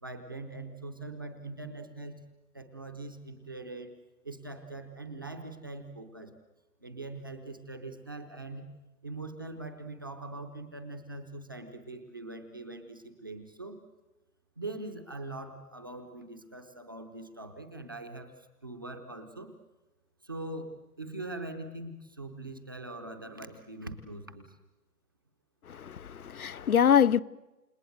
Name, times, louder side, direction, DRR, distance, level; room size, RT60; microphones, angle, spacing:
voice 1, 0.0-2.2 2.5-3.9 4.2-6.3 6.8-8.7 9.0-13.8 14.6-18.3 18.6-19.5 20.2-24.5, right 2 dB, 15° right, 0.7 m, -42 dB
voice 2, 25.7-27.2, left 8 dB, 65° left, 0.8 m, -24 dB
29.5 x 18.0 x 7.8 m
hypercardioid pair, 165°, 46 cm